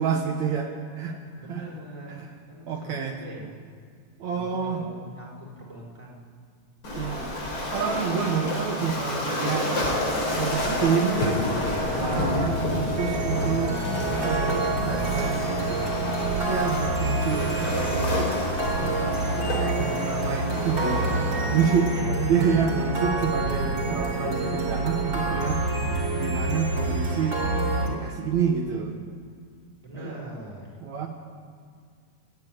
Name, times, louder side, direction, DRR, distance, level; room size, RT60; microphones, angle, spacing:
voice 1, 0.0-1.2 1.5-1.6 2.1-2.3 2.7-3.2 4.2-4.8 7.0-7.3 7.7-9.7 10.4-11.3 12.0-13.8 14.1-15.8 16.5-18.3 18.8-21.1 21.5-21.9 22.2-25.6 26.2-27.4 27.7-28.9 29.9-30.2 30.8-31.1, right 7 dB, 70° right, 2 dB, 2.5 m, -28 dB
voice 2, 1.4-3.5 4.3-6.2 21.8-22.6 29.8-30.8, right 1 dB, 10° right, -4 dB, 4.8 m, -41 dB
Waves surf, 6.8-21.8, left 1 dB, 45° left, 4.4 m, -30 dB
sound 1, 9.9-20.4, left 1 dB, 65° left, 6.4 m, -35 dB
sound 2, 13.0-27.9, right 2 dB, 40° right, 3.7 m, -27 dB
28.0 x 10.0 x 9.3 m, 2.1 s
omnidirectional pair, 3.4 m